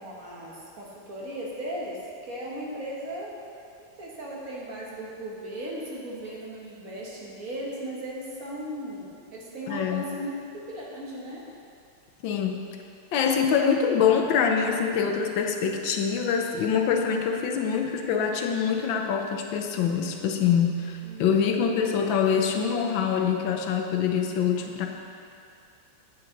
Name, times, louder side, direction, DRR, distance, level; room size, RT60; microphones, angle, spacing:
voice 1, 0.0-3.3 4.0-11.4 21.0-21.4, right 1 dB, 50° right, -4 dB, 1.7 m, -37 dB
voice 2, 9.7-10.1 12.2-12.6 13.1-24.9, left 7 dB, 85° left, 3 dB, 1.5 m, -25 dB
8.8 x 8.2 x 3.9 m, 2.4 s
omnidirectional pair, 2.1 m